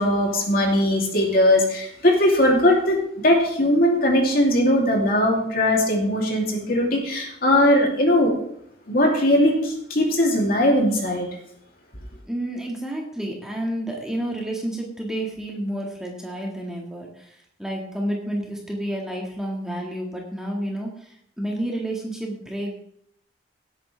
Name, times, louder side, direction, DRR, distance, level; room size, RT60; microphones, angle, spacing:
voice 1, 0.0-3.0 3.2-8.3 8.9-11.3, left 1 dB, 50° left, -1 dB, 3.0 m, -19 dB
voice 2, 12.3-22.8, right 1 dB, 5° right, -1 dB, 1.8 m, -30 dB
17.5 x 8.8 x 3.4 m, 0.70 s
head